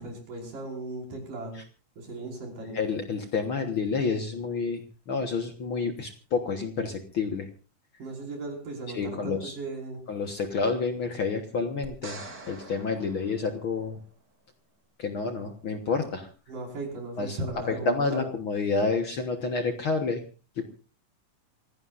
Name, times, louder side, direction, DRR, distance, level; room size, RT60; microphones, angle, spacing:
voice 1, 0.0-1.6 2.0-2.8 8.0-10.0 16.5-18.3, right 2 dB, 75° right, 0 dB, 6.8 m, -37 dB
voice 2, 2.7-7.5 8.9-9.5 10.1-14.0 15.0-16.3 17.2-17.4 17.7-20.2 20.6-20.7, left 4 dB, 55° left, 5 dB, 1.7 m, -29 dB
sound 1, 11.8-14.1 17.5-17.6, right 2 dB, 35° right, 3.0 m, -45 dB
27.0 x 17.0 x 2.6 m, 0.34 s
omnidirectional pair, 3.7 m